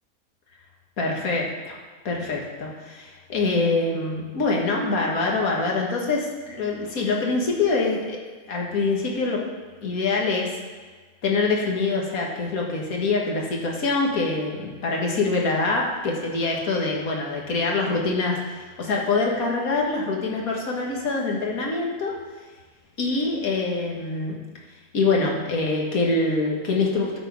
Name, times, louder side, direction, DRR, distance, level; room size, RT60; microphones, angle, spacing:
voice 1, 1.0-1.8 2.1-8.2 8.5-9.4 9.8-10.5 11.2-22.1 23.0-24.4 24.9-27.2, left 3 dB, 80° left, -1 dB, 1.8 m, -25 dB
12.5 x 4.4 x 4.7 m, 1.4 s
omnidirectional pair, 1.5 m